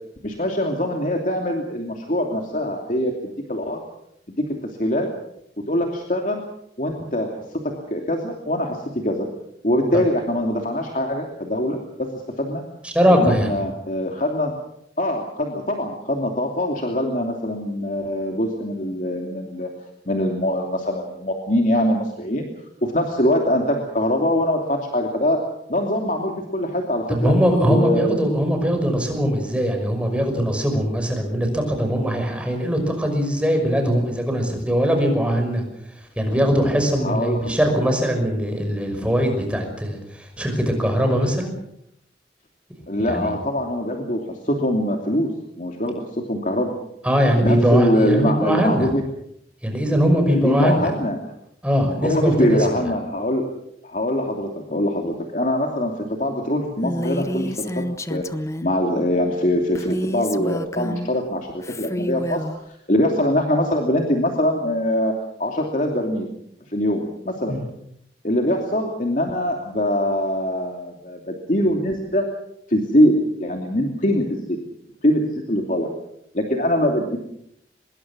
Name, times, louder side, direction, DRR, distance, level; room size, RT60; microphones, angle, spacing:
voice 1, 0.2-3.8 4.3-4.4 4.8-5.1 5.7-6.4 6.8-7.3 7.9-9.3 9.6-12.1 12.4-12.6 13.1-14.5 15.0-19.7 20.1-22.5 22.8-25.4 25.7-27.3 27.6-28.3 37.0-37.6 42.9-45.3 45.6-46.0 46.3-46.7 47.4-49.0 50.3-51.2 52.0-53.5 53.8-55.9 56.2-57.8 58.1-58.2 58.6-62.4 62.9-65.1 65.4-66.3 66.7-67.6 68.2-72.2 72.7-73.1 73.4-74.4 75.0-75.9 76.3-77.2, left 1 dB, 45° left, 2 dB, 2.8 m, -23 dB
voice 2, 12.8-13.5 27.1-35.6 36.2-41.5 43.0-43.3 47.0-48.9 49.6-50.9 51.6-52.6 67.5-67.6, equal, 5° right, 4 dB, 5.7 m, -21 dB
Female speech woman speaking, 56.8-58.7 59.8-61.2 61.6-62.6, equal, 15° left, 0.9 m, -29 dB
25.0 x 21.5 x 6.2 m, 0.75 s
head